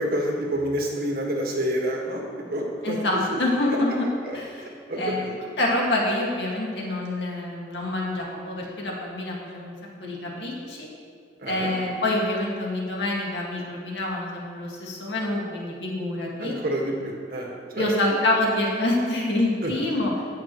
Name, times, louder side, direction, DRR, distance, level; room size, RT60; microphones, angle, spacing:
voice 1, 0.0-3.4 4.2-4.4 4.6-5.3 11.4-11.7 16.4-18.2 19.6-19.7, right 1 dB, 55° right, -1 dB, 1.7 m, -28 dB
voice 2, 2.8-4.1 4.3-5.3 5.6-9.7 10.0-10.9 11.5-16.6 17.7-20.1, left 1 dB, 80° left, -3 dB, 2.0 m, -26 dB
17.5 x 6.0 x 3.1 m, 2.1 s
head